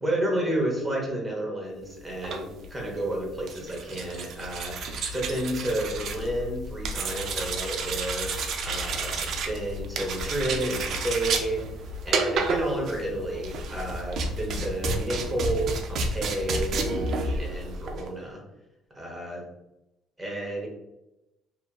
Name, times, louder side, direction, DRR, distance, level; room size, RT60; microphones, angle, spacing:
voice 1, 0.0-4.8 5.1-8.3 8.6-11.7 12.0-18.4 18.9-19.4 20.2-20.7, right 1 dB, 10° right, -2 dB, 0.7 m, -31 dB
sound 1, 2.1-18.1, right 3 dB, 55° right, 0.3 m, -31 dB
2.8 x 2.3 x 2.3 m, 0.92 s
cardioid pair, 135°, 0 cm